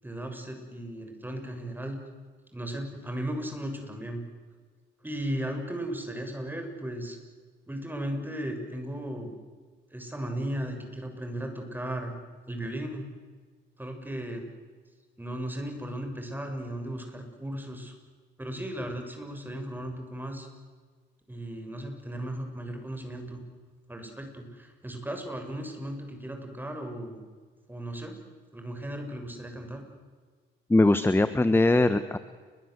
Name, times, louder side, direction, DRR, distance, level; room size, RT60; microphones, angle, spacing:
voice 1, 0.0-2.0 2.5-4.2 5.0-7.2 7.7-9.3 9.9-12.1 12.5-13.1 13.8-14.4 15.2-17.9 18.4-20.5 21.3-23.4 23.9-27.2 27.7-28.1 28.5-29.8, right 1 dB, 10° right, 4 dB, 7.2 m, -36 dB
voice 2, 30.7-32.2, left 2 dB, 10° left, 12 dB, 1.2 m, -21 dB
29.5 x 23.5 x 8.2 m, 1.5 s
cardioid pair, 90°, 20 cm